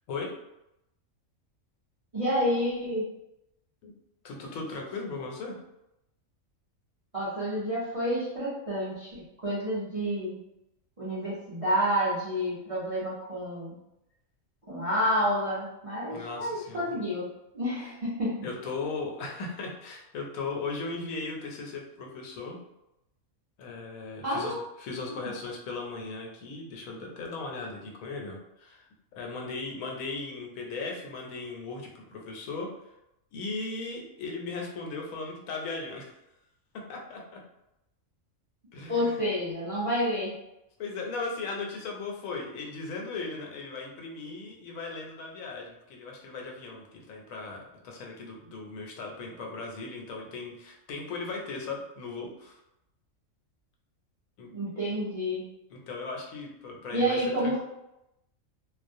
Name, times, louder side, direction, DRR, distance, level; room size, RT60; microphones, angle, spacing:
voice 1, 2.1-3.0 7.1-10.4 11.0-13.8 14.7-18.4 24.2-24.7 25.1-25.3 38.9-40.3 54.5-55.4 56.9-57.6, equal, 40° right, -9 dB, 0.5 m, -29 dB
voice 2, 4.2-5.5 16.1-17.0 18.4-22.6 23.6-28.9 29.1-32.7 33.3-36.1 36.7-37.4 38.7-39.2 40.8-52.6 54.4-54.5 55.7-57.6, left 3 dB, 80° left, 0 dB, 1.0 m, -37 dB
2.4 x 2.0 x 2.6 m, 0.86 s
omnidirectional pair, 1.4 m